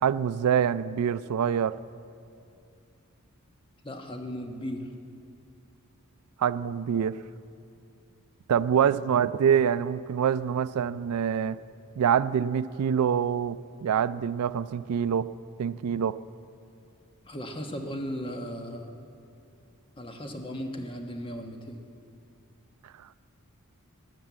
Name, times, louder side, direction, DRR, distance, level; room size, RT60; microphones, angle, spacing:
voice 1, 0.0-1.7 6.4-7.2 8.5-11.6 12.0-15.3 15.6-16.2, right 8 dB, 80° right, 16 dB, 0.4 m, -25 dB
voice 2, 3.8-4.9 17.2-18.9 20.0-21.8, equal, 25° left, 3 dB, 1.2 m, -36 dB
13.5 x 10.5 x 8.2 m, 2.5 s
head